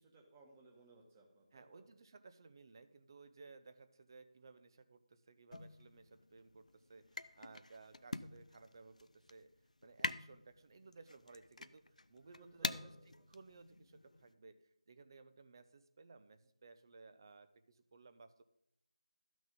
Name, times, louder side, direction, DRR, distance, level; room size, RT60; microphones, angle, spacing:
voice 1, 0.0-1.9 12.3-13.3, right 3 dB, 15° right, 0 dB, 1.5 m, -63 dB
voice 2, 1.5-9.5 9.8-12.9 13.3-18.4, right 4 dB, 35° right, 10 dB, 0.7 m, -59 dB
sound 1, 5.5-14.3, left 2 dB, 80° left, 0.6 m, -46 dB
13.0 x 6.2 x 5.4 m, 0.77 s
figure-of-eight pair, 165°, 4 cm